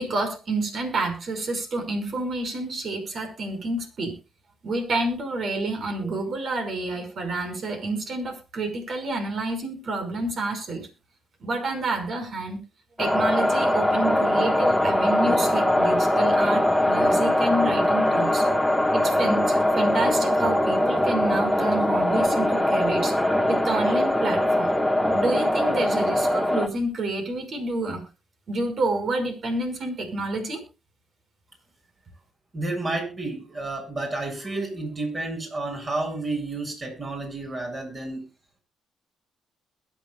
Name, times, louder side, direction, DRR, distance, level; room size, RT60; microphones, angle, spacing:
voice 1, 0.0-4.2 4.6-10.9 11.4-12.6 13.0-18.5 18.9-23.1 23.5-24.7 25.1-28.0 28.5-30.6, right 2 dB, 55° right, 6 dB, 5.7 m, -29 dB
sound 1, 13.0-26.7, left 1 dB, ahead, 1.5 m, -22 dB
voice 2, 32.5-38.3, right 2 dB, 30° right, 2 dB, 7.4 m, -31 dB
22.0 x 9.2 x 2.4 m, 0.30 s
cardioid pair, 90°, 0 cm